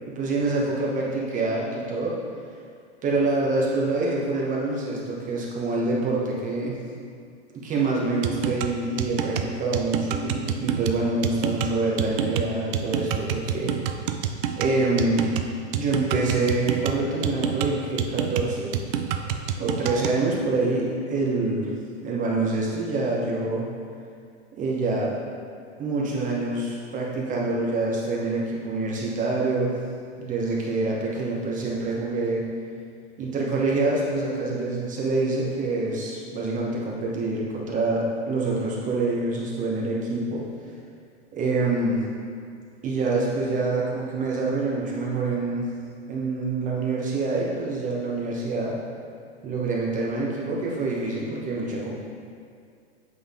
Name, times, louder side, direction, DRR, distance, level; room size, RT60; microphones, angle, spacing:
voice 1, 0.1-2.1 3.0-6.8 7.5-13.7 14.6-15.3 15.7-18.8 19.6-21.7 22.0-23.7 24.6-25.2 25.8-29.7 30.2-32.4 33.2-40.5 41.3-42.0 42.8-45.7 46.1-48.8 49.4-51.9, right 3 dB, 20° right, -3 dB, 1.0 m, -26 dB
sound 1, 8.2-20.2, right 9 dB, 55° right, 0.5 m, -28 dB
7.8 x 3.7 x 3.6 m, 2.3 s
hypercardioid pair, 135°, 35 cm